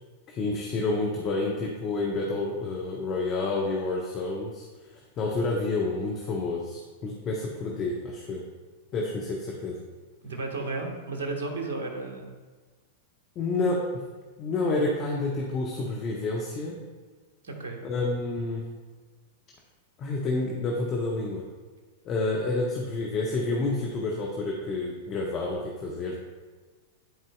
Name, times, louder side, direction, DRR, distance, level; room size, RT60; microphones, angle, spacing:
voice 1, 0.3-4.7 5.2-8.5 8.9-9.8 13.4-14.0 14.4-16.8 17.8-18.7 20.0-21.4 22.0-26.2, left 3 dB, 35° left, -1 dB, 1.0 m, -29 dB
voice 2, 10.2-12.3 17.4-17.8, right 3 dB, 70° right, 2 dB, 1.4 m, -33 dB
11.0 x 4.4 x 2.3 m, 1.4 s
figure-of-eight pair, 95°, 0 cm